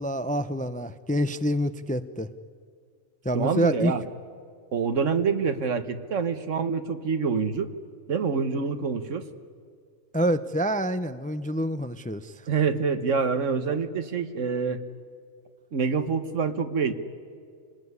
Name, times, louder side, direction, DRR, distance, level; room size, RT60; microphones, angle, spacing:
voice 1, 0.0-2.3 3.2-3.9 10.1-12.4, equal, 10° left, 12 dB, 0.4 m, -27 dB
voice 2, 3.3-4.0 4.7-7.7 8.1-9.2 12.5-14.8 15.7-16.9, right 5 dB, 80° right, 10 dB, 1.7 m, -26 dB
27.0 x 20.0 x 9.7 m, 2.1 s
omnidirectional pair, 1.3 m